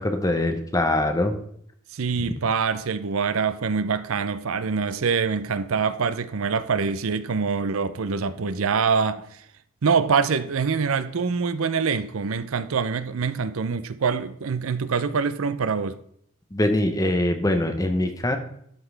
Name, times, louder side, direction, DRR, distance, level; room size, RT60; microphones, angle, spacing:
voice 1, 0.0-1.4 16.5-18.4, left 1 dB, 15° left, 0.8 m, -23 dB
voice 2, 1.9-9.3 9.8-16.0, right 5 dB, 75° right, 0.5 m, -25 dB
12.5 x 5.8 x 3.4 m
head